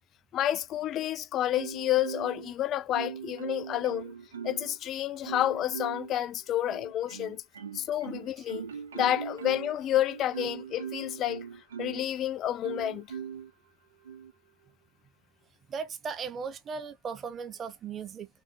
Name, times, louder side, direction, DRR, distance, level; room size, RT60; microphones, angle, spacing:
voice 1, 0.3-4.1 4.4-7.4 7.7-8.7 8.9-11.5 11.8-13.1, left 12 dB, 30° left, 0.4 m, -30 dB
Marimba xylophone, 1.5-2.5 2.9-4.8 5.2-6.1 6.7-12.1 12.6-13.5 14.0-14.3, right 7 dB, 65° right, 1.7 m, -40 dB
voice 2, 15.7-18.3, right 6 dB, 25° right, 0.7 m, -37 dB
3.6 x 3.4 x 3.6 m
figure-of-eight pair, 90°, 0 cm